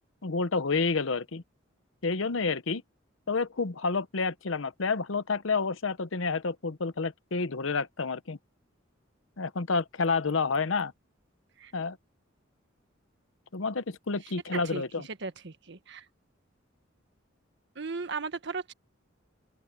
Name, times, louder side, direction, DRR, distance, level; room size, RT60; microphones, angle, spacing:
voice 1, 0.2-1.4 2.0-2.8 3.3-8.4 9.4-10.9 11.7-12.0 13.5-15.1, left 4 dB, 80° left, 0.9 m, -29 dB
voice 2, 14.2-14.8 15.2-16.0 17.7-18.7, right 4 dB, 65° right, 1.5 m, -37 dB
open air
head